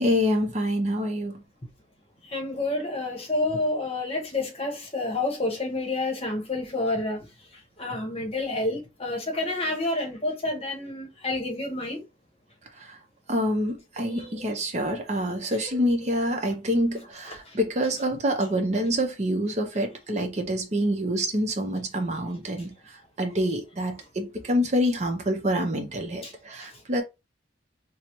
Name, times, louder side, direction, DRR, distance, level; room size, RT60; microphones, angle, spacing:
voice 1, 0.0-1.4 13.3-22.7 23.2-27.0, equal, 35° right, 0.6 m, -26 dB
voice 2, 2.3-7.3 7.8-12.0 14.0-14.4 15.6-15.8 17.5-17.6 26.2-26.3 26.6-26.7, left 2 dB, 30° left, 0.9 m, -29 dB
4.7 x 2.0 x 2.9 m
head